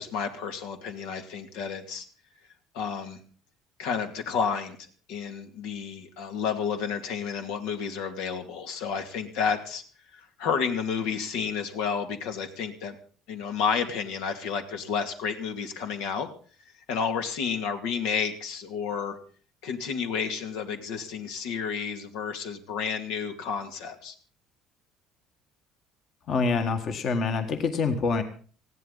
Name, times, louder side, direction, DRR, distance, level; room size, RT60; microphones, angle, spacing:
voice 1, 0.0-2.1 2.7-3.2 3.8-4.8 5.1-9.8 10.1-12.9 13.3-16.3 16.9-19.2 19.6-24.1, left 6 dB, 85° left, 6 dB, 2.4 m, -31 dB
voice 2, 26.3-28.2, left 4 dB, 45° left, 7 dB, 1.7 m, -26 dB
19.5 x 15.5 x 4.1 m, 0.41 s
cardioid pair, 135°, 0 cm